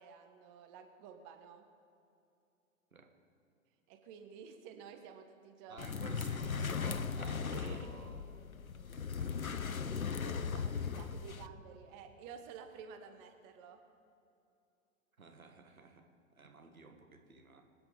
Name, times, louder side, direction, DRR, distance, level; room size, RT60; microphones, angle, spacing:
voice 1, 0.0-1.6 3.9-5.8 7.5-7.9 10.1-13.8, right 7 dB, 35° right, 6 dB, 1.4 m, -52 dB
voice 2, 5.7-8.2 9.2-9.7 15.2-16.1 16.4-17.6, right 4 dB, 80° right, 4 dB, 1.7 m, -54 dB
sound 1, 5.8-11.5, left 6 dB, 85° left, 0.8 m, -38 dB
25.5 x 9.4 x 5.2 m, 2.7 s
figure-of-eight pair, 100°, 41 cm